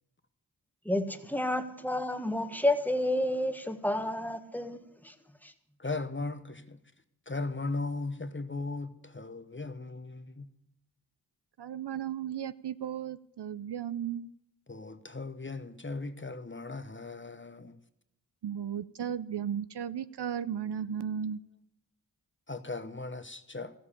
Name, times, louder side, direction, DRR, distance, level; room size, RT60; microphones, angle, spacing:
voice 1, 0.8-5.1 5.4-5.5, left 1 dB, 5° left, 1.5 m, -30 dB
voice 2, 5.8-6.8 7.3-10.5 14.7-17.8 22.5-23.7, left 3 dB, 30° left, 1.0 m, -37 dB
voice 3, 11.6-14.3 18.4-21.4, right 8 dB, 70° right, 0.6 m, -35 dB
14.0 x 7.6 x 8.4 m
cardioid pair, 45°, 42 cm